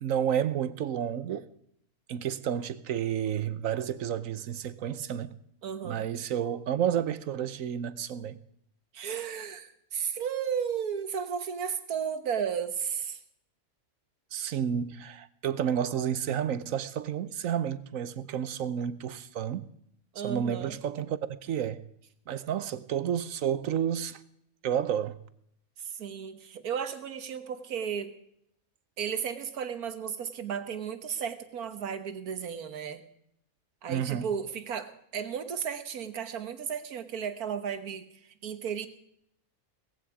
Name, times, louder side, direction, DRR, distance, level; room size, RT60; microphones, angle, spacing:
voice 1, 0.0-1.5 2.1-5.4 5.8-8.4 14.3-19.7 20.2-21.8 22.3-24.2 24.6-25.2 33.9-34.3, right 9 dB, 70° right, 1.2 m, -31 dB
voice 2, 5.6-6.0 8.9-13.2 20.1-20.8 25.8-28.2 29.0-33.0 33.8-38.1 38.4-38.9, right 7 dB, 85° right, 1.7 m, -34 dB
18.5 x 15.5 x 5.0 m
omnidirectional pair, 1.5 m